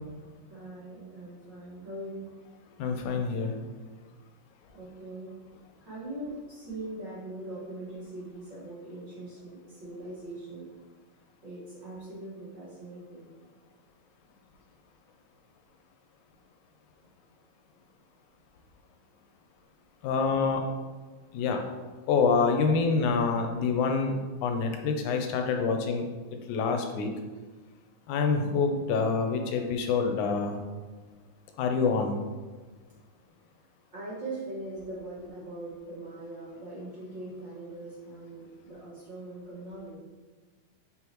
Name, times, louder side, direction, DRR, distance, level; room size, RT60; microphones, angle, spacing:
voice 1, 0.5-2.3 4.7-5.4 5.8-10.7 11.4-13.5 33.9-40.0, right 2 dB, 40° right, -9 dB, 2.0 m, -41 dB
voice 2, 2.8-3.5 20.0-20.7 21.3-21.6 22.1-24.1 24.4-26.0 26.5-27.1 28.1-30.6 31.6-32.2, left 5 dB, 75° left, 4 dB, 2.0 m, -26 dB
6.4 x 5.7 x 3.0 m, 1.3 s
omnidirectional pair, 3.7 m